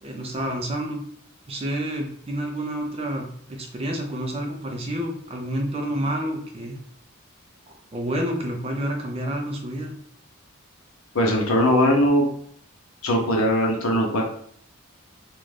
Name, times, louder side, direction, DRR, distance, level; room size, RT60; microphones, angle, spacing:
voice 1, 0.0-1.0 1.5-6.8 7.7-10.0, right 1 dB, 30° right, 1 dB, 0.5 m, -29 dB
voice 2, 11.1-12.2 13.0-14.2, equal, 80° left, 0 dB, 0.7 m, -20 dB
2.5 x 2.2 x 3.2 m, 0.65 s
head